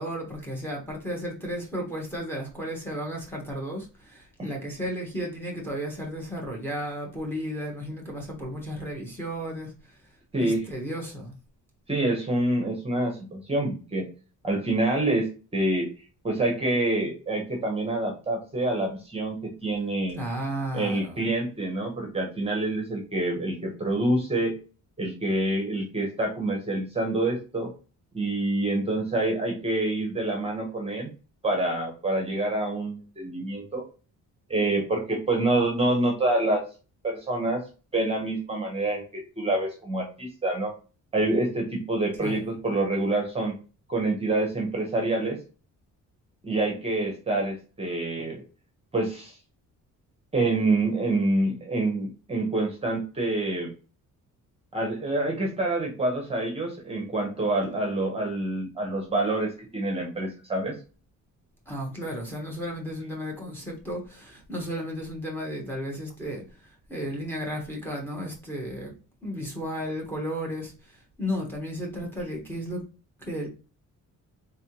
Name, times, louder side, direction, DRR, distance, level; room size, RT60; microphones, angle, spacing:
voice 1, 0.0-10.0 10.4-11.3 20.1-21.3 42.2-42.5 61.7-68.9 69.2-72.8 73.2-73.5, equal, 5° left, 1.1 m, -34 dB
voice 2, 11.9-14.1 14.4-15.9 16.2-20.2 20.7-24.5 25.0-27.7 28.1-31.1 31.4-33.8 34.5-36.6 37.0-37.6 37.9-40.7 41.1-43.5 43.9-45.4 46.4-48.4 48.9-49.4 50.3-53.7 54.7-60.7, right 2 dB, 20° right, 0.9 m, -27 dB
3.7 x 3.3 x 2.9 m
cardioid pair, 165°, 32 cm